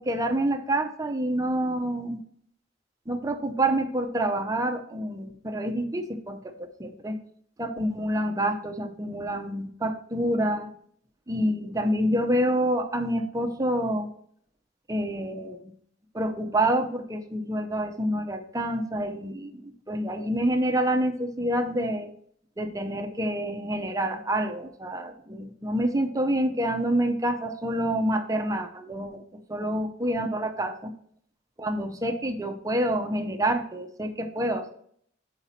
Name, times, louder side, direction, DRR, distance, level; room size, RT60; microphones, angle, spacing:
voice 1, 0.0-2.2 3.1-7.2 7.6-10.7 11.3-14.1 14.9-15.6 16.1-22.1 22.6-29.2 29.5-30.9 31.6-34.7, right 1 dB, 20° right, 7 dB, 0.6 m, -27 dB
8.5 x 4.9 x 4.2 m, 0.64 s
head